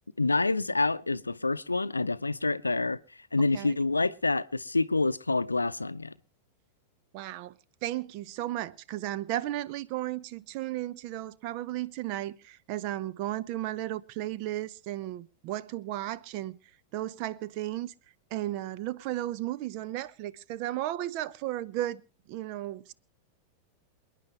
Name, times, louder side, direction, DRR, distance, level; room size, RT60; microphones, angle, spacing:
voice 1, 0.2-3.0 3.3-6.1, left 3 dB, 80° left, 0.6 m, -27 dB
voice 2, 7.1-7.6 7.8-16.6 16.9-17.9 18.3-22.0 22.3-22.9, right 14 dB, 45° right, 0.7 m, -34 dB
27.5 x 10.0 x 3.3 m
figure-of-eight pair, 90°, 0 cm